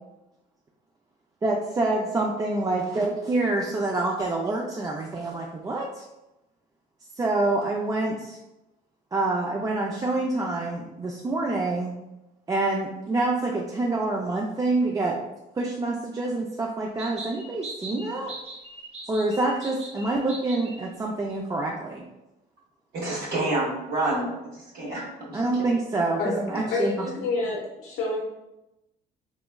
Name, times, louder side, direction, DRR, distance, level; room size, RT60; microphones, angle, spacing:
voice 1, 1.4-6.0 7.2-8.4 9.1-12.0 12.5-15.2 15.6-18.4 19.1-22.1 25.3-26.9, right 2 dB, 20° right, -1 dB, 0.3 m, -26 dB
sound 1, 17.0-20.9, right 2 dB, 35° right, 0.9 m, -40 dB
voice 2, 22.9-25.4 26.5-26.6, right 2 dB, 65° right, -6 dB, 1.2 m, -29 dB
voice 3, 26.7-28.2, left 3 dB, 70° left, 0 dB, 0.5 m, -28 dB
3.4 x 3.1 x 2.2 m, 0.95 s
cardioid pair, 110°, 17 cm